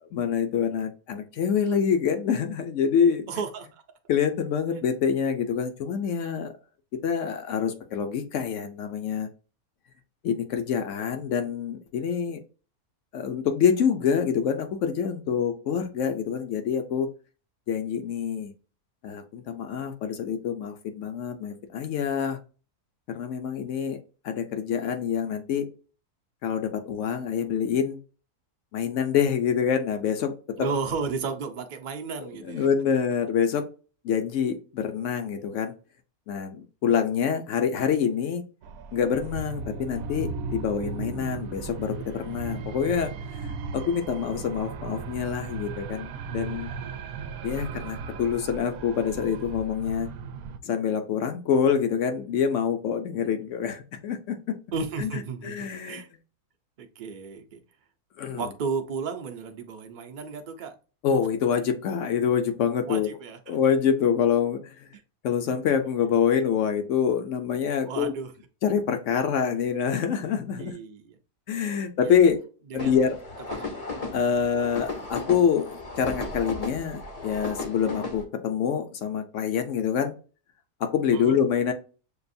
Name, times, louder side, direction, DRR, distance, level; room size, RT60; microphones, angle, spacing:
voice 1, 0.1-3.3 4.1-6.5 7.0-9.3 10.2-12.4 13.1-17.1 17.7-18.5 19.0-22.4 23.1-24.0 24.2-25.7 26.4-28.0 28.7-30.6 32.2-33.6 34.0-35.7 36.3-38.4 38.9-43.1 43.4-46.7 47.4-50.1 50.6-54.6 55.0-55.1 55.4-56.0 58.2-58.5 61.0-63.1 63.5-64.9 65.2-68.1 68.6-70.7 71.5-72.4 72.7-73.2 74.1-80.1 80.8-81.7, left 7 dB, 60° left, 6 dB, 0.9 m, -26 dB
voice 2, 3.3-3.8 30.6-32.7 54.7-55.5 55.9-56.1 56.8-57.6 58.4-60.7 62.9-63.6 64.9-65.0 67.8-68.3 70.6-71.2 72.0-72.1 72.7-73.0 73.5-73.6 74.3-74.5 81.1-81.3, right 5 dB, 50° right, 6 dB, 0.5 m, -33 dB
sound 1, 38.6-50.6, right 5 dB, 75° right, 1.0 m, -36 dB
sound 2, 72.8-78.2, left 3 dB, 35° left, 0.6 m, -35 dB
6.7 x 2.5 x 2.6 m, 0.36 s
omnidirectional pair, 1.6 m